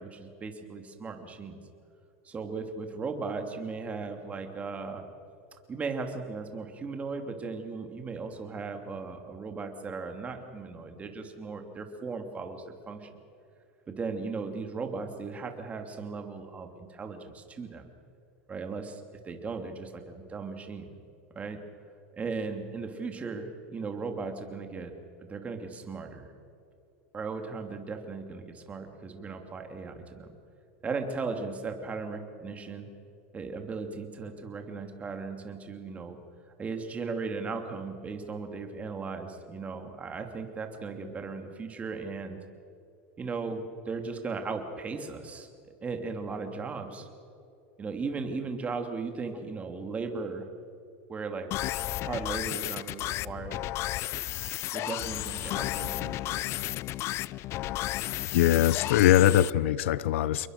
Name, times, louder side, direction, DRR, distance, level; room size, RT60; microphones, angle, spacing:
voice 1, 0.0-1.6 2.2-5.1 5.7-13.1 13.9-17.9 18.5-20.9 21.3-21.6 22.1-24.9 25.3-26.3 27.1-30.3 30.8-32.9 33.3-36.2 36.6-42.4 43.2-45.5 45.8-47.1 47.8-50.5 51.1-51.5 52.0-53.6 54.7-56.5, right 4 dB, 20° right, 5 dB, 2.8 m, -37 dB
sound 1, 51.5-59.5, left 16 dB, 40° left, 0.5 m, -33 dB
voice 2, 58.3-60.5, left 13 dB, 80° left, 19 dB, 0.8 m, -22 dB
29.0 x 22.0 x 6.7 m, 2.6 s
supercardioid pair, 135°, 7 cm